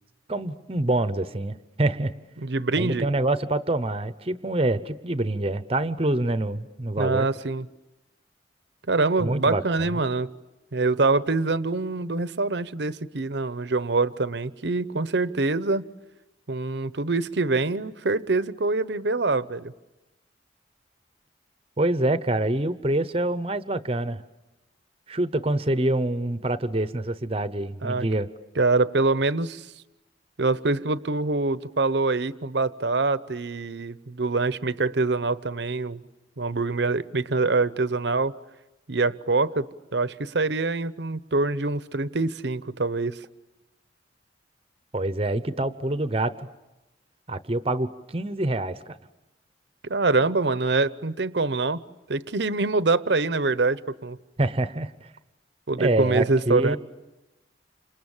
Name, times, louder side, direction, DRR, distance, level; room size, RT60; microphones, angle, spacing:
voice 1, 0.3-2.1 2.8-7.3 9.2-9.9 21.8-24.2 25.1-28.3 44.9-46.5 47.3-48.9 54.4-54.9 55.8-56.8, right 1 dB, 30° right, 0.9 m, -26 dB
voice 2, 2.4-3.1 7.0-7.6 8.9-10.3 10.7-15.8 16.5-19.7 27.8-28.1 28.6-29.7 30.4-36.0 36.4-38.3 38.9-39.7 39.9-43.2 49.8-51.8 52.1-54.2 55.7-56.8, right 3 dB, 70° right, 0.9 m, -25 dB
29.5 x 27.0 x 7.3 m
head